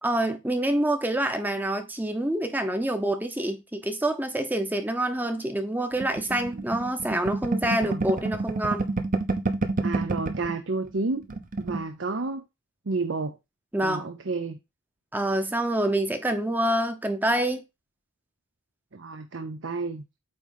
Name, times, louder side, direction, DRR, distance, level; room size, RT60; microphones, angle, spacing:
voice 1, 0.0-8.9 13.7-14.1 15.1-17.6, right 1 dB, 10° right, 0.8 m, -26 dB
sound 1, 6.0-10.5 10.9-11.0 11.2-11.8, right 3 dB, 40° right, 0.9 m, -28 dB
voice 2, 9.8-11.2 11.6-12.4 12.9-13.3 13.8-14.6 18.9-20.0, right 3 dB, 65° right, 0.7 m, -30 dB
8.7 x 3.2 x 5.4 m
head